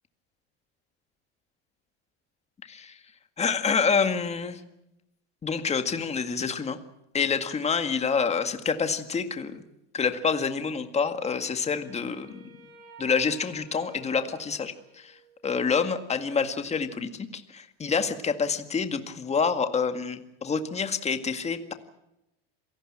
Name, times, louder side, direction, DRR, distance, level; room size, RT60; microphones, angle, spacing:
voice 1, 2.6-3.0 3.4-4.6 5.4-6.8 7.1-9.6 9.9-12.5 13.0-21.7, left 5 dB, 20° left, 8 dB, 2.0 m, -27 dB
Wind instrument woodwind instrument, 11.1-15.5, right 2 dB, 55° right, 7.4 m, -52 dB
27.0 x 18.5 x 7.6 m, 0.90 s
supercardioid pair, 130°, 30 cm